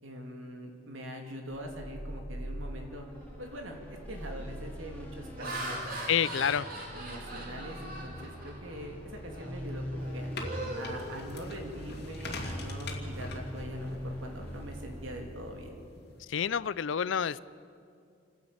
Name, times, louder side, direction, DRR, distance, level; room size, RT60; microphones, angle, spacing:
voice 1, 0.0-3.1 3.4-6.0 6.9-10.3 10.7-15.7, equal, 75° right, 2 dB, 3.0 m, -43 dB
sound 1, 1.5-16.1, equal, 10° left, 2.8 m, -43 dB
Laughter, 3.3-3.6 4.1-4.4 5.0-8.9 9.3-9.5 9.9-11.9, right 1 dB, 45° right, 3.0 m, -41 dB
voice 2, 6.1-6.7 16.3-17.4, left 8 dB, 65° left, 19 dB, 0.4 m, -28 dB
sound 2, 10.0-16.2, left 2 dB, 50° left, 2.6 m, -43 dB
28.5 x 10.5 x 8.7 m, 2.4 s
head